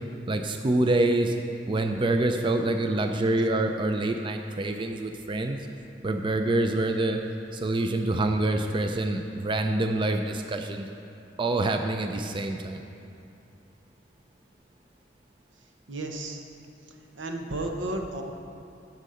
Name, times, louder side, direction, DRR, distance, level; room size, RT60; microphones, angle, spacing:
voice 1, 0.3-1.3 1.7-5.7 6.0-7.2 7.5-10.9 11.4-12.8, right 2 dB, 25° right, 5 dB, 0.4 m, -26 dB
voice 2, 15.9-16.4 17.2-18.2, right 1 dB, 85° right, 3 dB, 1.0 m, -32 dB
12.0 x 5.3 x 6.4 m, 2.6 s
head